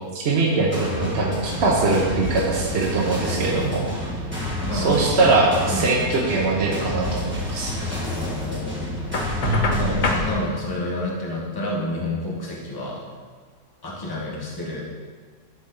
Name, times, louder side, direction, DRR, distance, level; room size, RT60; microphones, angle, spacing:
voice 1, 0.1-4.1 4.7-7.7 9.4-9.9, right 3 dB, 50° right, -2 dB, 1.1 m, -22 dB
sound 1, 0.7-10.3, left 1 dB, 10° right, 1.6 m, -29 dB
voice 2, 4.7-5.4 5.7-5.9 8.1-9.3 9.8-13.0 13.8-14.9, left 1 dB, 15° left, -4 dB, 1.2 m, -30 dB
Knock, 9.1-10.3, left 2 dB, 50° left, 0.6 m, -25 dB
12.0 x 4.2 x 3.8 m, 1.5 s
omnidirectional pair, 1.6 m